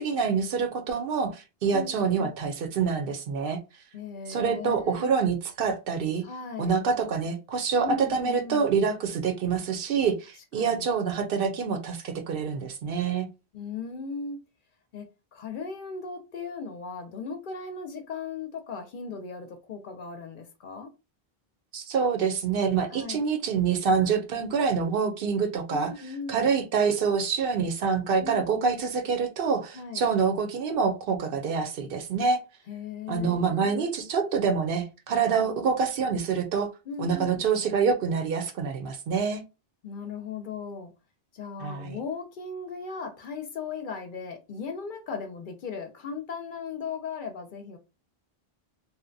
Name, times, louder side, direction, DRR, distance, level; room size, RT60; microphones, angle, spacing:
voice 1, 0.0-3.6 4.3-6.2 6.6-13.3 21.7-25.9 26.3-32.4 33.1-36.7 37.0-39.4 41.6-42.0, right 5 dB, 70° right, 0.7 m, -26 dB
voice 2, 1.7-2.3 3.9-5.1 6.2-6.7 7.8-8.7 10.6-10.9 13.5-14.4 14.9-20.9 22.9-23.2 25.7-26.5 28.2-28.8 29.7-30.1 32.7-33.9 35.1-35.5 36.9-37.4 39.8-40.9 41.3-47.8, left 5 dB, 60° left, 0.6 m, -37 dB
2.7 x 2.1 x 2.5 m
omnidirectional pair, 1.0 m